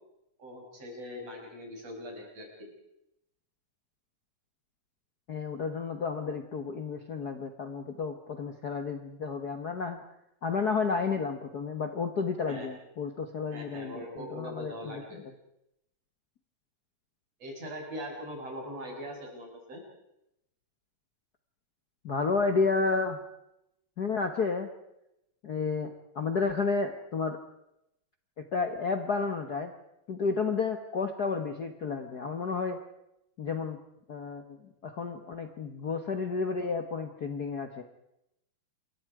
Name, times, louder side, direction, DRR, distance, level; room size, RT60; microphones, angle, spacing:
voice 1, 0.4-2.7 12.5-12.7 13.5-15.2 17.4-19.8, equal, 50° right, -1 dB, 7.6 m, -41 dB
voice 2, 5.3-10.0 10.4-15.2 22.0-23.2 24.0-24.7 25.4-27.4 28.4-29.7 30.1-32.8 33.4-33.8 34.1-34.6 34.8-37.8, left 4 dB, 90° left, 6 dB, 0.8 m, -31 dB
28.0 x 23.0 x 4.9 m, 0.83 s
omnidirectional pair, 3.8 m